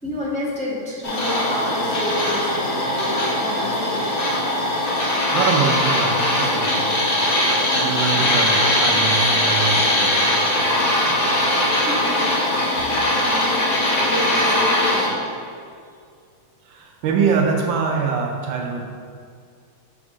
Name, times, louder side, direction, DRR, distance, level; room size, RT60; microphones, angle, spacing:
voice 1, 0.0-4.1 11.8-12.3 13.2-13.6 14.0-16.0, left 1 dB, 5° left, -7 dB, 1.0 m, -30 dB
sound 1, 1.0-15.1, left 1 dB, 60° left, 1.7 m, -20 dB
voice 2, 5.3-7.0 7.7-10.4 16.7-18.8, right 5 dB, 75° right, 1 dB, 1.4 m, -24 dB
6.2 x 3.7 x 6.1 m, 2.2 s
omnidirectional pair, 2.2 m